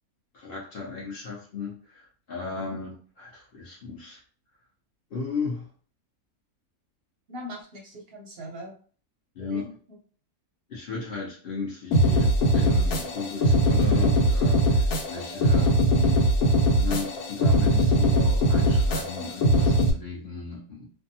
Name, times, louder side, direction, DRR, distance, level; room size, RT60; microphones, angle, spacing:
voice 1, 0.3-4.2 5.1-5.7 9.3-9.7 10.7-16.3 16.8-20.9, left 4 dB, 55° left, -5 dB, 0.6 m, -35 dB
voice 2, 7.3-8.8 9.4-10.0 15.3-15.7, equal, 55° right, 0 dB, 0.7 m, -42 dB
sound 1, 11.9-19.9, equal, 80° left, 1.1 m, -21 dB
2.6 x 2.2 x 2.7 m, 0.42 s
omnidirectional pair, 1.6 m